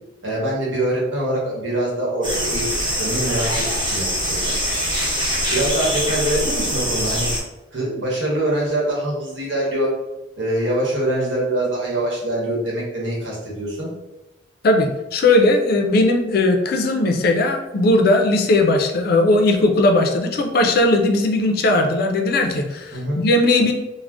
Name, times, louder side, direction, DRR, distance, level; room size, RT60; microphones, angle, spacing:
voice 1, 0.2-4.5 5.5-7.3 7.7-9.9 10.4-13.9 22.9-23.2, right 1 dB, 85° right, -4 dB, 1.0 m, -24 dB
sound 1, 2.2-7.4, equal, 25° right, 0.8 m, -23 dB
voice 2, 14.6-23.7, left 2 dB, 55° left, 4 dB, 0.4 m, -18 dB
2.5 x 2.0 x 3.4 m, 0.99 s
head